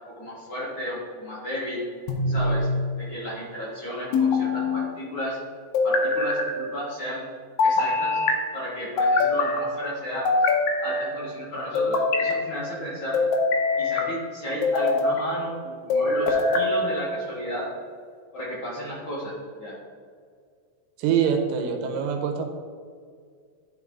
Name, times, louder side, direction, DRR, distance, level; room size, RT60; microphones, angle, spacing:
voice 1, 0.1-1.9 2.3-2.7 3.0-5.4 5.8-7.3 7.6-8.2 8.5-10.5 10.8-13.2 13.8-17.7 18.3-19.8, equal, 50° left, -7 dB, 1.5 m, -33 dB
sound 1, 2.1-2.8 4.1-4.9 5.7-6.5 7.6-8.4 9.0-9.6 10.3-11.1 11.8-12.4 13.1-14.1 14.6-15.2 15.9-16.7, left 3 dB, 70° left, 1.9 m, -23 dB
voice 2, 21.0-22.5, right 7 dB, 80° right, 4 dB, 2.4 m, -24 dB
11.5 x 4.4 x 3.6 m, 2.1 s
omnidirectional pair, 4.0 m